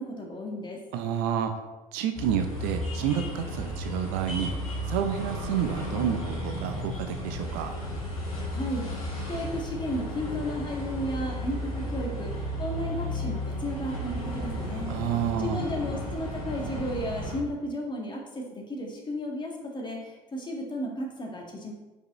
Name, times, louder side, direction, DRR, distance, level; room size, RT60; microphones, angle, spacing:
voice 1, 0.0-0.8 8.4-14.9 15.4-21.7, equal, 25° left, 0 dB, 1.7 m, -34 dB
voice 2, 0.9-1.5 1.9-4.5 4.9-7.8 14.9-15.7, right 9 dB, 60° right, 7 dB, 0.6 m, -29 dB
sound 1, 2.1-17.4, left 1 dB, 85° left, 1.6 m, -34 dB
5.4 x 4.8 x 4.2 m, 1.1 s
figure-of-eight pair, 65°, 18 cm